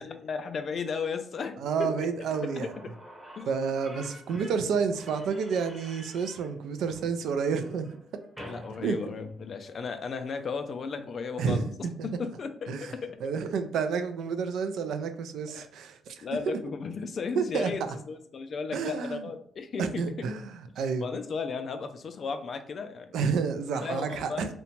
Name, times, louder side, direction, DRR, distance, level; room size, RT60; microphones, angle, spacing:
voice 1, 0.0-2.1 2.6-2.7 3.3-3.5 4.1-4.2 8.5-11.7 12.0-13.2 16.2-20.3 21.0-23.2 23.8-24.5, left 5 dB, 50° left, 8 dB, 0.3 m, -35 dB
voice 2, 1.6-2.7 3.5-7.9 8.8-9.0 11.4-12.1 12.7-12.9 13.2-16.6 17.4-17.7 18.7-19.2 19.8-21.1 23.1-24.5, right 5 dB, 75° right, 9 dB, 0.3 m, -30 dB
Slam / Squeak, 2.3-9.8, equal, ahead, 0.7 m, -48 dB
2.8 x 2.1 x 2.8 m, 0.63 s
cardioid pair, 90°, 0 cm